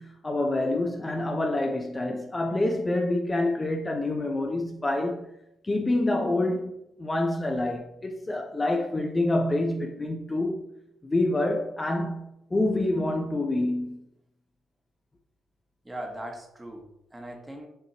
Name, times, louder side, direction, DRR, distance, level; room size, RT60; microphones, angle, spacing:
voice 1, 0.0-5.3 5.6-10.6 11.0-14.1, left 2 dB, 20° left, 0.5 m, -27 dB
voice 2, 15.8-17.7, right 1 dB, 15° right, 1.0 m, -39 dB
6.5 x 2.9 x 2.8 m
cardioid pair, 90°, 0 cm